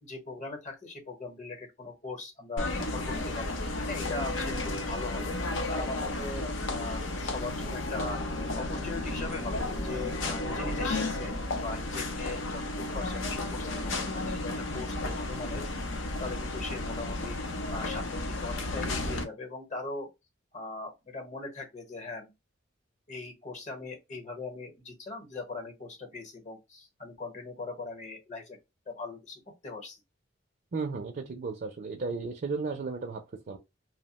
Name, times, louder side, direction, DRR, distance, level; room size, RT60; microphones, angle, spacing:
voice 1, 0.0-5.4 5.7-8.2 8.5-15.6 16.2-17.4 17.7-20.1 20.5-22.3 23.1-28.6 28.9-30.0, left 3 dB, 40° left, 0.9 m, -40 dB
sound 1, 2.6-19.2, left 2 dB, 80° left, 0.6 m, -33 dB
Bowed string instrument, 7.5-11.7, left 1 dB, 20° left, 0.5 m, -45 dB
voice 2, 30.7-33.6, right 4 dB, 50° right, 0.4 m, -34 dB
2.8 x 2.1 x 2.9 m
head